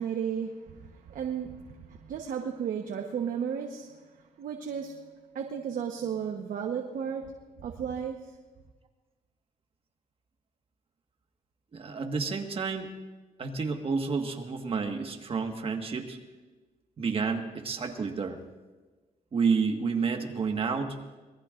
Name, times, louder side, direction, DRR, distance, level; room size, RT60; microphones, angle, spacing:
voice 1, 0.0-3.9 4.4-5.0 5.3-7.3 7.6-8.3, right 7 dB, 70° right, 3 dB, 1.2 m, -34 dB
voice 2, 11.7-12.9 13.4-16.2 17.0-18.4 19.3-21.0, right 5 dB, 40° right, 4 dB, 1.6 m, -30 dB
26.0 x 20.0 x 2.6 m, 1.3 s
cardioid pair, 115°, 15 cm